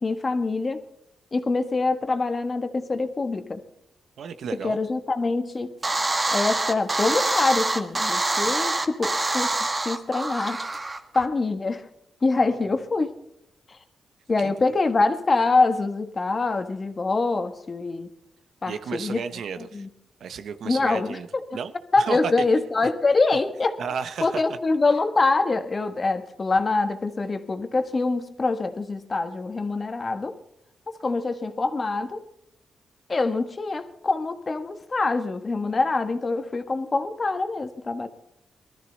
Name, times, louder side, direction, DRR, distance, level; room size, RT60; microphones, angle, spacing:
voice 1, 0.0-0.8 1.3-3.6 4.6-5.7 6.3-9.5 9.8-10.6 11.1-11.8 12.2-13.1 13.7-13.8 14.3-18.1 18.6-19.2 19.6-19.9 20.6-21.2 21.9-23.8 24.2-30.3 31.0-32.2 33.1-38.1, left 3 dB, 40° left, 8 dB, 1.5 m, -24 dB
voice 2, 4.2-4.8 12.5-12.6 14.4-14.5 18.7-19.9 20.2-21.3 21.5-22.3 23.8-24.6, right 6 dB, 80° right, 11 dB, 0.8 m, -33 dB
sound 1, 5.8-11.3, right 2 dB, 30° right, 1.4 m, -25 dB
19.5 x 13.5 x 4.0 m, 0.79 s
cardioid pair, 75°, 0 cm